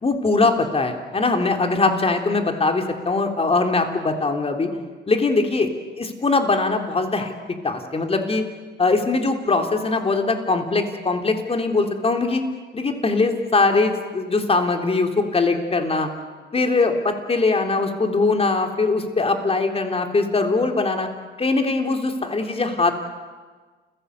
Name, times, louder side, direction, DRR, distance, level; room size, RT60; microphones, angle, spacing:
voice 1, 0.0-4.7 5.1-5.7 6.0-8.4 8.8-12.4 12.7-16.1 16.5-21.1 21.4-22.9, left 3 dB, 30° left, 5 dB, 3.3 m, -21 dB
29.5 x 16.5 x 8.2 m, 1.4 s
cardioid pair, 90°, 20 cm